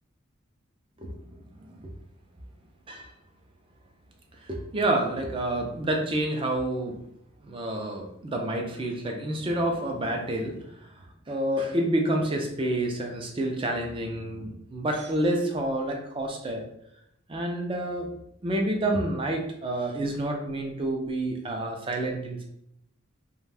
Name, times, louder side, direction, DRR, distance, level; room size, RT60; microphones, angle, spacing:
voice 1, 1.6-1.9 2.9-3.1 4.4-7.0 7.4-10.9 11.3-16.7 17.3-18.1 18.4-22.4, right 1 dB, 25° right, 2 dB, 0.4 m, -29 dB
2.5 x 2.2 x 3.3 m, 0.76 s
head